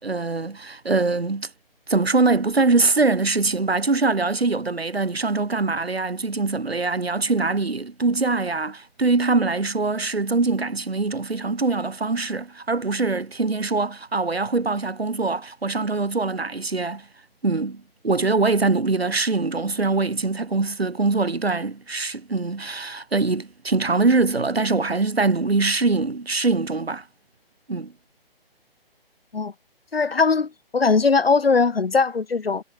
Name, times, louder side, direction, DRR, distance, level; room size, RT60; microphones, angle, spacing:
voice 1, 0.0-1.5 1.9-17.1 17.4-27.0 27.7-27.9, right 3 dB, 90° right, 4.4 m, -23 dB
voice 2, 29.9-32.6, left 4 dB, 75° left, 6.6 m, -20 dB
figure-of-eight pair, 145°, 30 cm